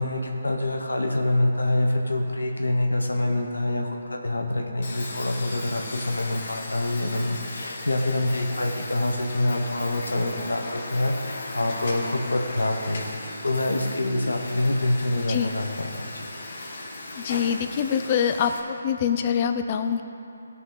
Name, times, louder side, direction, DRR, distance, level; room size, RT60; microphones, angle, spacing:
voice 1, 0.0-13.0 13.4-15.9 16.1-16.2, left 1 dB, 90° left, 2 dB, 1.0 m, -26 dB
sound 1, 4.8-18.6, left 2 dB, 55° left, 1.7 m, -37 dB
voice 2, 17.2-20.0, left 8 dB, 35° left, 8 dB, 0.5 m, -25 dB
16.5 x 5.7 x 3.9 m, 2.9 s
figure-of-eight pair, 150°, 0 cm